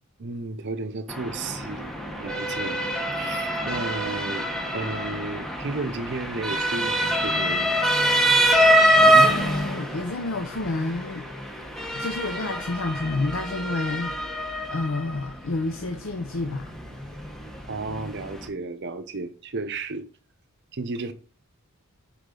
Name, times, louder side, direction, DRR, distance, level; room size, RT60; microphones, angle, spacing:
voice 1, 0.2-1.9 2.2-4.5 4.7-7.8 17.7-20.1 20.7-21.1, right 3 dB, 55° right, 0.8 m, -33 dB
Motor vehicle (road) / Siren, 1.1-18.5, right 1 dB, ahead, 1.0 m, -25 dB
voice 2, 9.2-11.3 11.9-16.7, left 2 dB, 65° left, 0.6 m, -29 dB
6.5 x 5.0 x 3.8 m
head